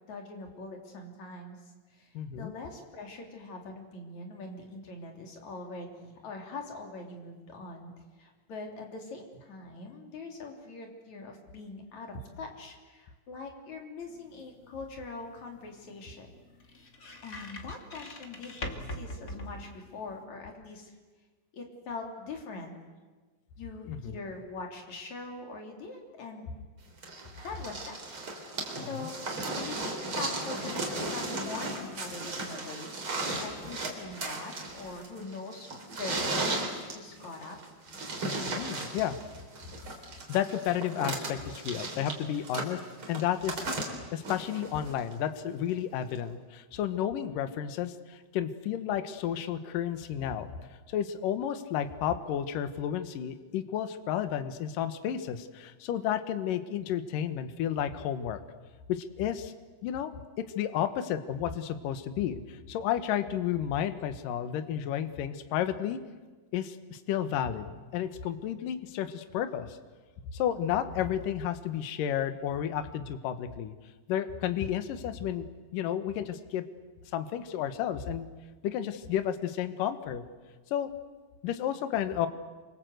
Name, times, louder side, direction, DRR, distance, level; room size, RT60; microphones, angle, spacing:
voice 1, 0.1-1.6 1.9-7.9 8.2-16.3 16.7-16.8 17.2-20.9 21.5-22.8 23.6-26.6 27.4-28.0 28.8-29.2 29.5-32.9 33.4-35.7 36.0-37.6, left 3 dB, 40° left, 2 dB, 4.2 m, -42 dB
voice 2, 2.1-2.5 23.9-24.2 28.9-29.1 38.5-39.2 40.3-42.8 43.1-43.7 44.1-50.5 50.9-58.4 58.9-59.5 59.8-60.1 60.4-66.0 66.5-69.8 70.3-73.7 74.1-76.6 77.1-78.3 78.6-80.2 80.7-80.9 81.4-82.3, left 10 dB, 65° left, 10 dB, 2.2 m, -32 dB
sound 1, 14.0-20.2, left 1 dB, 80° left, 0.7 m, -44 dB
sound 2, 27.0-45.1 46.2-46.3, right 2 dB, 30° right, 3.9 m, -36 dB
28.0 x 25.5 x 8.0 m, 1.3 s
omnidirectional pair, 5.5 m